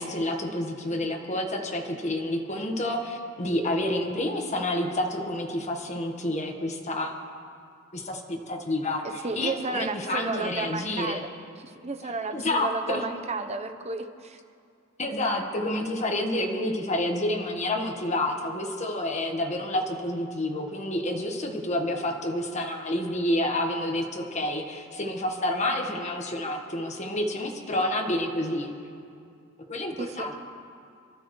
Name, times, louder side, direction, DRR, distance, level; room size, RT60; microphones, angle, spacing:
voice 1, 0.0-7.1 7.9-11.2 12.3-13.0 15.0-28.7 29.7-30.3, left 1 dB, 35° left, 1 dB, 1.5 m, -29 dB
voice 2, 9.2-11.3 11.6-14.4 30.0-30.3, right 3 dB, 30° right, 7 dB, 0.9 m, -33 dB
29.0 x 12.5 x 3.2 m, 2.4 s
head